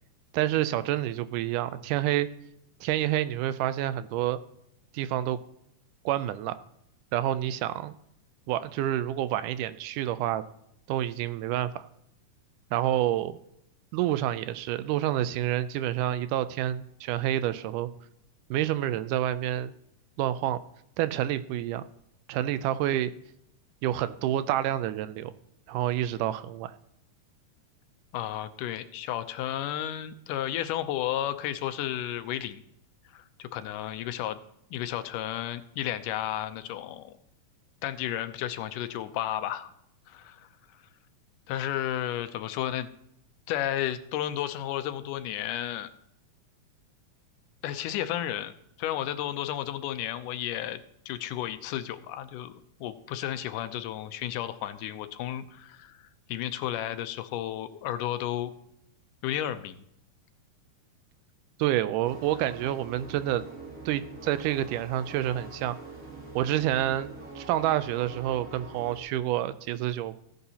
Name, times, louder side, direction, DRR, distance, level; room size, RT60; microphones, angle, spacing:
voice 1, 0.3-2.3 2.8-4.4 4.9-5.4 6.1-6.6 7.1-7.9 8.5-10.4 10.9-11.9 12.7-13.4 13.9-17.9 18.5-19.7 20.2-20.6 21.0-21.8 22.3-23.1 23.8-25.3 25.7-26.7 61.6-63.4 63.9-65.8 66.4-70.2, right 13 dB, 85° right, 14 dB, 2.1 m, -28 dB
voice 2, 28.1-32.6 33.1-34.4 34.7-37.1 37.8-39.7 40.1-40.5 41.5-42.9 43.5-45.9 47.6-48.5 48.8-50.8 51.1-56.0 56.3-58.5 59.2-59.8, left 12 dB, 85° left, 11 dB, 2.2 m, -32 dB
sound 1, 62.0-69.0, right 3 dB, 30° right, 2.4 m, -44 dB
15.0 x 9.6 x 2.9 m, 0.77 s
omnidirectional pair, 3.7 m